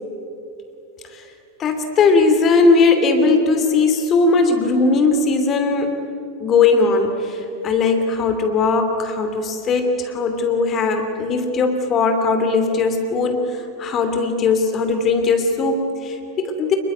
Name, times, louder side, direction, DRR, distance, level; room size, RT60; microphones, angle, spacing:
voice 1, 1.6-6.0 6.4-16.8, left 4 dB, 30° left, 7 dB, 2.8 m, -18 dB
28.0 x 21.5 x 9.5 m, 2.9 s
figure-of-eight pair, 90°, 0 cm